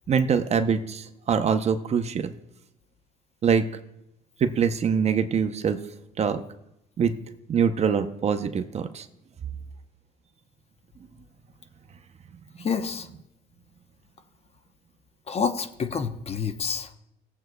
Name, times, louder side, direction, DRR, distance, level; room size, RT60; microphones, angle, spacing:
voice 1, 0.1-2.3 3.4-3.7 4.4-5.8 6.2-6.4 7.0-7.1 7.5-9.1, right 6 dB, 40° right, 9 dB, 0.7 m, -24 dB
voice 2, 12.6-13.1 15.3-16.9, left 6 dB, 35° left, 8 dB, 0.9 m, -28 dB
19.0 x 7.7 x 2.3 m, 0.86 s
cardioid pair, 110°, 17 cm